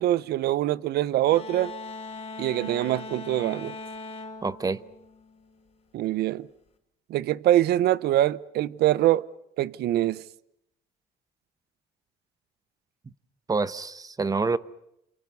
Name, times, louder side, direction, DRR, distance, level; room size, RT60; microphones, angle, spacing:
voice 1, 0.0-1.7 2.4-3.8 5.9-6.5 7.1-9.3 9.6-10.2, right 14 dB, 75° right, 0.9 m, -24 dB
sound 1, 1.3-5.7, left 3 dB, 35° left, 4.4 m, -40 dB
voice 2, 4.4-4.8 13.5-14.6, right 4 dB, 20° right, 1.0 m, -27 dB
29.5 x 28.0 x 5.5 m
cardioid pair, 110°, 17 cm